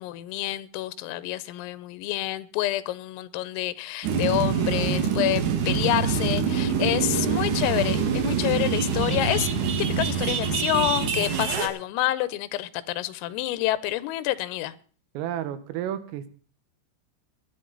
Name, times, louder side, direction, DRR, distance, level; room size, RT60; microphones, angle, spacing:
voice 1, 0.0-9.5 9.8-14.7, left 15 dB, 90° left, 16 dB, 3.5 m, -28 dB
sound 1, 4.0-11.7, right 6 dB, 60° right, 2.2 m, -25 dB
voice 2, 15.2-16.3, right 11 dB, 85° right, 12 dB, 3.7 m, -31 dB
23.5 x 10.0 x 3.9 m, 0.41 s
omnidirectional pair, 5.8 m